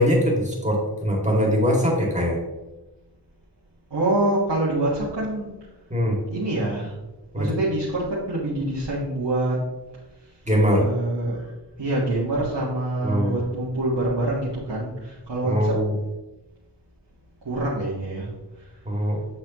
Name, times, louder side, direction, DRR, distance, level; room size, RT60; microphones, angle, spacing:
voice 1, 0.0-2.4 5.9-6.2 7.3-7.5 10.5-10.8 13.0-13.3 15.4-15.9 18.9-19.2, equal, 15° right, -2 dB, 2.3 m, -21 dB
voice 2, 3.9-5.5 6.3-6.9 7.3-9.6 10.7-11.5 11.8-15.7 17.4-18.3, right 1 dB, 85° right, -8 dB, 1.7 m, -25 dB
8.4 x 5.8 x 3.0 m, 1.1 s
wide cardioid pair, 65°, 41 cm